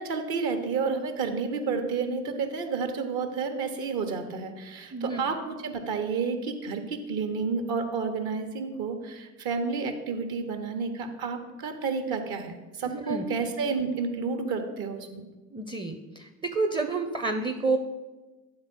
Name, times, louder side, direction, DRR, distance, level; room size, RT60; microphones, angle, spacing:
voice 1, 0.0-15.2, right 5 dB, 55° right, 7 dB, 1.1 m, -30 dB
voice 2, 4.9-5.2 12.9-13.2 15.5-17.8, right 3 dB, 15° right, 6 dB, 0.5 m, -29 dB
8.7 x 3.7 x 6.1 m, 1.2 s
figure-of-eight pair, 50°, 43 cm